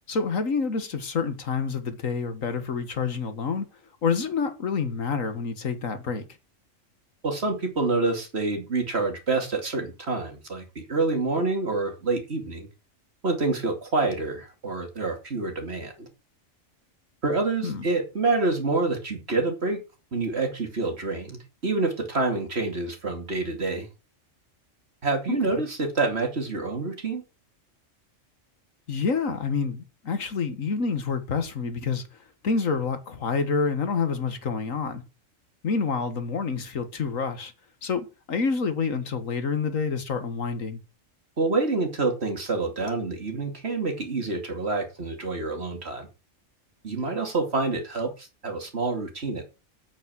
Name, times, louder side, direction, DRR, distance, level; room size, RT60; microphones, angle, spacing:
voice 1, 0.1-3.7 4.0-6.3 17.6-17.9 25.3-25.6 28.9-32.0 32.4-35.0 35.6-37.5 37.8-40.8, left 5 dB, 85° left, 2.0 m, -28 dB
voice 2, 7.2-10.6 10.9-12.7 13.2-16.1 17.2-19.8 20.1-23.9 25.0-27.2 41.4-46.1 46.8-49.4, right 3 dB, 50° right, 2.8 m, -27 dB
8.6 x 8.6 x 6.3 m
omnidirectional pair, 1.4 m